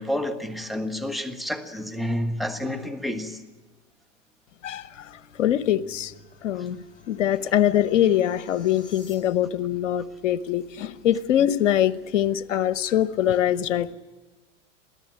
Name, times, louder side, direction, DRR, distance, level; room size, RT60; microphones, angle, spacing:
voice 1, 0.0-3.4 7.4-7.5, left 1 dB, ahead, 1.5 m, -29 dB
voice 2, 4.6-5.1 5.4-6.1 6.4-13.9, left 11 dB, 75° left, 1.0 m, -23 dB
sound 1, 4.7-9.6, left 1 dB, 20° left, 7.9 m, -53 dB
22.5 x 15.0 x 9.0 m
hypercardioid pair, 110°, 37 cm